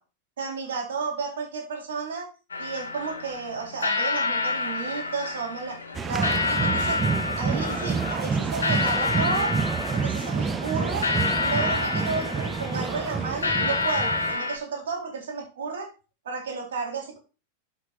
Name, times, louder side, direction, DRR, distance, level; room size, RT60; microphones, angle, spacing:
voice 1, 0.4-2.3 2.6-5.8 6.1-7.0 7.3-9.5 9.9-11.1 11.4-15.9 16.2-17.2, right 4 dB, 65° right, 0 dB, 4.4 m, -32 dB
sound 1, 2.5-14.6, left 3 dB, 75° left, 2.2 m, -29 dB
sound 2, 5.9-14.4, right 5 dB, 20° right, 0.6 m, -28 dB
11.5 x 7.6 x 2.6 m, 0.32 s
figure-of-eight pair, 90°, 0 cm